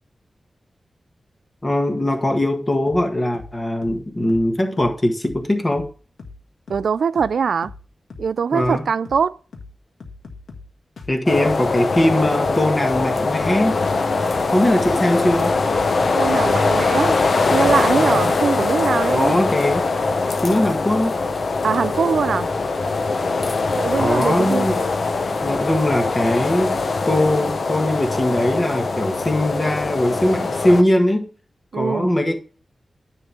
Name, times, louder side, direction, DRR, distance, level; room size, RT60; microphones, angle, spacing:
voice 1, 1.6-5.9 8.5-8.9 11.1-13.8 14.5-15.6 18.0-18.4 19.1-19.8 20.4-21.1 24.0-24.8 25.4-31.3 31.7-32.4, left 1 dB, 25° left, 1.6 m, -20 dB
sound 1, 2.9-3.1 3.3-3.6 3.8-4.0 4.3-4.5 4.8-5.0 5.2-5.5 5.7-5.9 6.2-6.4 6.7-6.9 7.2-7.4 7.6-7.8 8.1-8.3 8.6-8.8 9.1-9.3 9.5-9.7 10.0-10.7 11.0-11.2 11.4-11.7 11.9-12.1 12.4-12.6 12.9-13.1 13.3-13.6 13.8-14.0 14.3-14.5 14.8-15.0 15.2-15.5 15.7-15.9 16.2-16.4 16.7-16.9 17.1-17.4 17.6-17.8, left 4 dB, 85° left, 1.6 m, -40 dB
voice 2, 6.7-7.7 8.2-9.4 16.1-17.2 17.5-19.4 21.6-22.5 23.7-24.7 31.7-32.1, right 6 dB, 85° right, 0.3 m, -22 dB
sound 2, 11.3-30.8, left 3 dB, 60° left, 0.8 m, -22 dB
10.0 x 3.7 x 6.8 m
wide cardioid pair, 105°, 0 cm